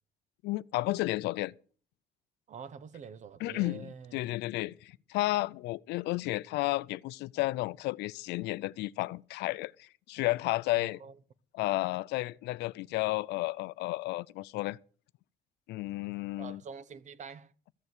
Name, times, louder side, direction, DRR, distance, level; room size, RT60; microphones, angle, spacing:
voice 1, 0.4-1.5 3.4-11.0 11.5-14.8 15.7-16.6, left 19 dB, 85° left, 0.5 m, -32 dB
voice 2, 2.5-4.2 10.7-11.1 16.4-17.5, right 6 dB, 45° right, 0.9 m, -46 dB
14.5 x 7.1 x 8.0 m
cardioid pair, 110°, 17 cm